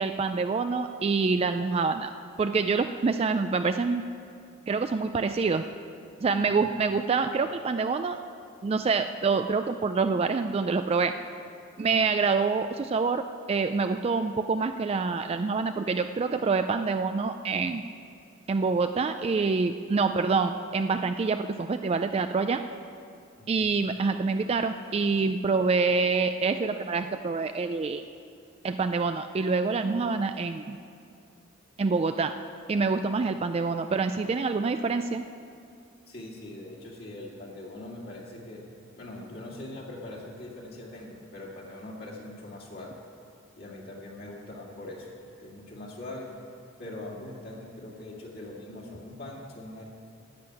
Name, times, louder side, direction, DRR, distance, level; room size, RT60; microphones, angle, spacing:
voice 1, 0.0-2.1 2.4-4.1 4.7-5.6 6.2-8.2 8.6-11.1 11.8-17.8 18.5-22.6 23.5-28.0 28.6-30.8 31.8-32.3 32.7-35.2, right 4 dB, 30° right, 8 dB, 0.3 m, -26 dB
voice 2, 36.1-38.7 39.0-43.0 43.6-46.3 46.8-49.8, left 1 dB, 50° left, -4 dB, 2.1 m, -42 dB
10.5 x 8.0 x 9.6 m, 2.4 s
head